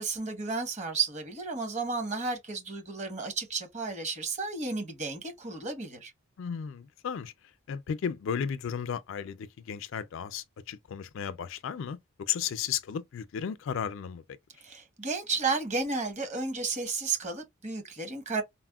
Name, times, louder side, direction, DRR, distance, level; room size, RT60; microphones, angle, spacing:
voice 1, 0.0-6.1 14.6-18.4, right 4 dB, 35° right, 1.0 m, -33 dB
voice 2, 6.4-7.3 7.7-14.2, left 7 dB, 60° left, 0.3 m, -34 dB
4.1 x 2.1 x 2.3 m
head